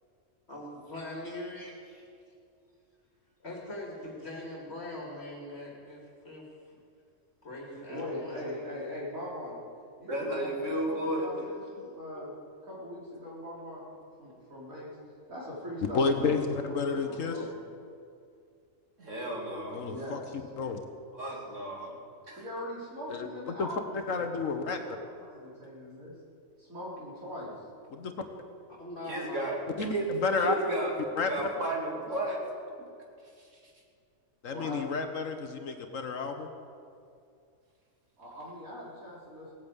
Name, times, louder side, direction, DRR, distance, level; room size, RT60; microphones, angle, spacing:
voice 1, 0.5-2.1 3.4-6.8 7.4-8.6 12.2-12.3 28.7-29.5, left 1 dB, 50° left, -2 dB, 2.6 m, -42 dB
voice 2, 7.9-9.6 10.0-12.3 12.6-13.9 14.2-14.9 15.3-17.5 19.8-20.2 22.4-26.1 26.6-27.7 34.5-35.0 38.2-39.5, left 1 dB, 85° right, -6 dB, 4.7 m, -41 dB
voice 3, 10.0-11.3 19.0-19.8 21.2-22.0 22.2-22.4 29.1-30.1 30.4-32.4 32.8-32.9 33.4-33.6, right 1 dB, 65° right, -2 dB, 3.2 m, -33 dB
voice 4, 15.9-17.4 19.7-20.2 20.6-20.8 23.1-23.7 24.1-24.8 27.9-28.1 29.8-30.6 31.2-31.3 34.4-36.5, left 4 dB, 70° left, 6 dB, 1.5 m, -31 dB
18.0 x 8.9 x 8.1 m, 2.4 s
omnidirectional pair, 1.4 m